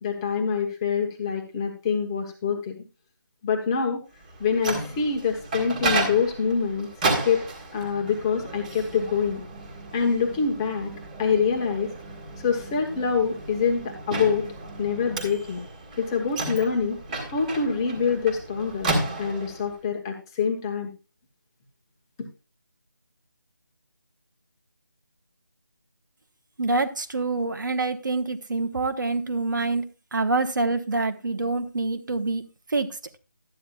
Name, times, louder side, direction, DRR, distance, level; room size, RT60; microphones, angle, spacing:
voice 1, 0.0-2.8 3.4-4.0 4.4-6.9 7.2-7.4 7.7-9.4 9.9-10.9 11.2-11.9 12.4-14.5 14.8-15.6 16.0-17.0 17.3-20.9, left 6 dB, 10° left, 1.0 m, -25 dB
Microwave oven, 4.3-19.7, right 2 dB, 20° right, 1.7 m, -33 dB
voice 2, 26.6-32.4 32.7-32.9, right 3 dB, 60° right, 1.2 m, -26 dB
12.5 x 9.4 x 2.4 m
figure-of-eight pair, 170°, 12 cm